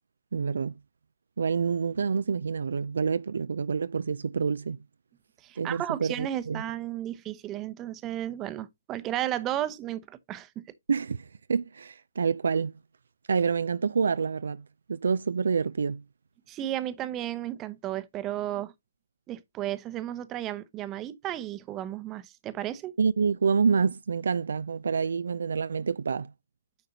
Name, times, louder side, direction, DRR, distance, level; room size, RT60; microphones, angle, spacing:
voice 1, 0.3-0.7 1.4-4.8 5.6-6.6 10.9-11.2 11.5-12.7 13.3-16.0 23.0-26.3, right 5 dB, 65° right, 0.4 m, -27 dB
voice 2, 5.4-10.6 16.5-18.7 19.3-22.9, right 12 dB, 20° right, 0.8 m, -33 dB
9.4 x 6.5 x 2.8 m
figure-of-eight pair, 140°, 0 cm